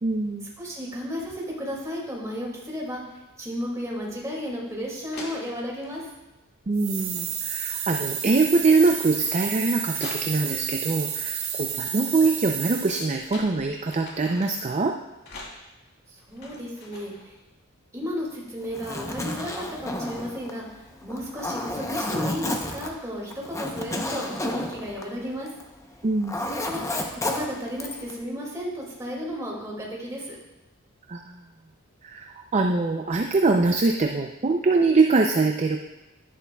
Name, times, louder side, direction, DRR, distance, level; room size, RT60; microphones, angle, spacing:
voice 1, 0.0-0.6 6.7-15.0 26.0-26.5 31.1-31.4 32.0-35.8, right 3 dB, 35° right, 3 dB, 0.5 m, -23 dB
voice 2, 0.6-3.0 3.4-6.1 16.1-17.4 17.9-25.5 26.4-30.4, equal, 15° right, -3 dB, 2.3 m, -33 dB
sound 1, 4.7-4.8 5.1-6.1 6.8-7.3 7.6-10.8 12.3-14.7 15.2-17.3, left 2 dB, 50° left, 2.1 m, -44 dB
sound 2, 6.7-13.2, right 8 dB, 80° right, 1.2 m, -31 dB
Zipper (clothing), 18.6-25.7 26.0-28.2, left 1 dB, 15° left, 0.7 m, -31 dB
11.0 x 10.5 x 2.3 m, 1.0 s
head